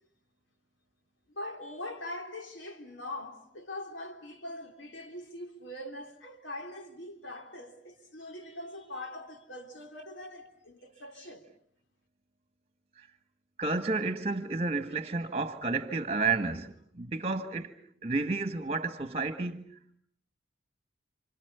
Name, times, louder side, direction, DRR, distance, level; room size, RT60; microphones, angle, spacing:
voice 1, 1.3-11.5, left 1 dB, 75° left, 3.4 m, -42 dB
voice 2, 13.6-17.7 18.0-19.8, right 3 dB, 30° right, 1.6 m, -31 dB
29.5 x 27.0 x 7.0 m
head